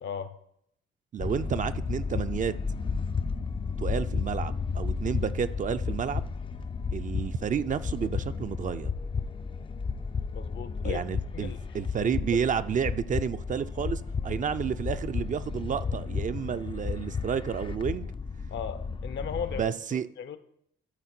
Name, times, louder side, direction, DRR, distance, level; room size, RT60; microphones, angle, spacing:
voice 1, 0.0-0.3 10.3-11.1 11.3-11.6 12.0-12.4 18.5-20.4, left 7 dB, 65° left, 12 dB, 0.7 m, -37 dB
voice 2, 1.1-2.5 3.8-6.3 6.9-8.9 10.8-18.1 19.6-20.1, right 7 dB, 40° right, 12 dB, 0.4 m, -31 dB
sound 1, 1.2-19.6, left 5 dB, 25° left, 0.4 m, -33 dB
13.0 x 4.4 x 4.3 m, 0.72 s
cardioid pair, 90°, 20 cm